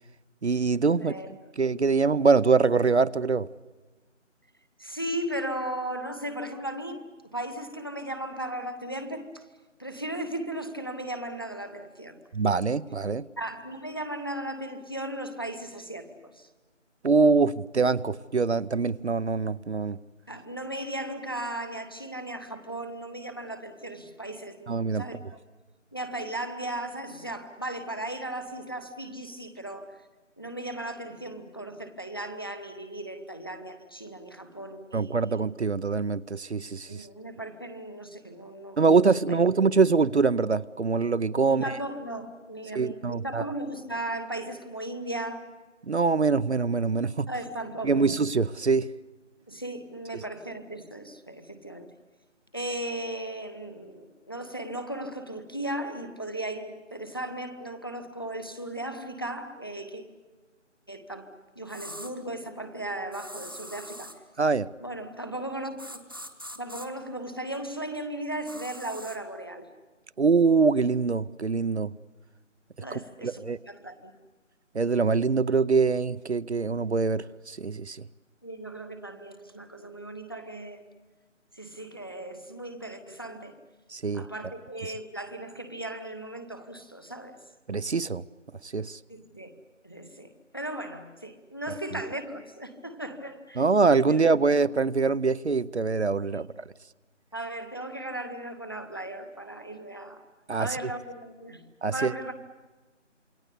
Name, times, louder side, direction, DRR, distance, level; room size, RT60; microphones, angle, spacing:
voice 1, 0.4-1.1 1.6-3.5 12.3-13.3 17.0-20.0 24.7-25.0 34.9-37.1 38.8-41.6 42.7-43.4 45.9-47.3 47.8-48.9 64.4-64.7 70.2-71.9 72.9-73.6 74.7-78.0 83.9-84.2 87.7-88.2 88.6-89.0 93.6-96.5 100.5-100.7 101.8-102.1, right 4 dB, 60° right, 0.7 m, -24 dB
voice 2, 0.9-1.5 4.8-7.0 7.3-9.5 9.8-12.2 13.4-16.1 16.3-16.5 20.3-25.2 25.9-30.0 30.4-35.4 36.9-39.4 41.4-45.4 47.3-48.1 49.5-51.9 52.5-60.0 60.9-64.1 64.8-66.0 66.5-69.7 72.8-74.1 78.4-80.8 81.5-83.5 84.1-87.4 89.1-89.5 89.8-93.6 94.1-94.2 96.3-96.4 97.3-100.2 100.6-101.6 101.9-102.4, right 1 dB, 20° left, 1.0 m, -36 dB
sound 1, 61.7-62.1 63.1-64.2 65.8-66.9 68.5-69.2, equal, 20° right, 1.0 m, -42 dB
27.5 x 22.0 x 8.2 m
figure-of-eight pair, 175°, 38 cm